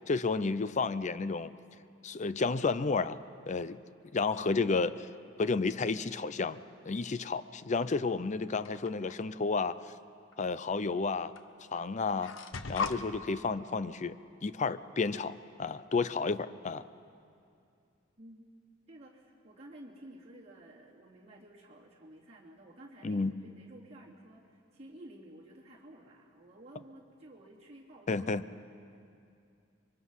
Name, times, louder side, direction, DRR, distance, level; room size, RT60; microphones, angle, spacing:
voice 1, 0.1-1.5 2.0-3.2 3.5-3.8 4.1-5.1 5.4-6.6 6.8-9.8 10.4-11.3 11.7-12.3 12.7-14.2 14.4-16.9 23.0-23.3 28.1-28.4, left 4 dB, 40° left, 14 dB, 0.5 m, -31 dB
sound 1, 8.6-9.2 10.3-10.4 11.4-11.5 11.7-13.0, left 4 dB, 90° left, 0.9 m, -37 dB
voice 2, 18.2-18.5 18.9-28.2, right 1 dB, 35° right, -4 dB, 3.0 m, -53 dB
25.5 x 23.5 x 5.6 m, 2.4 s
head